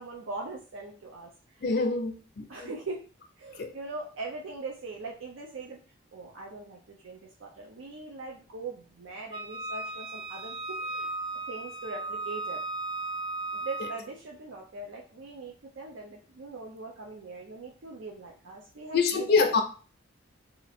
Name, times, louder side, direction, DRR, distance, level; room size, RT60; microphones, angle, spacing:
voice 1, 0.0-1.7 2.5-3.0 3.4-5.8 6.1-11.1 11.5-12.6 13.5-19.6, right 3 dB, 90° right, 0.6 m, -41 dB
voice 2, 1.6-2.5 3.6-3.7 18.9-19.6, left 4 dB, 55° left, 0.4 m, -25 dB
Wind instrument woodwind instrument, 9.3-14.0, right 2 dB, 20° right, 0.4 m, -36 dB
2.8 x 2.5 x 4.1 m
head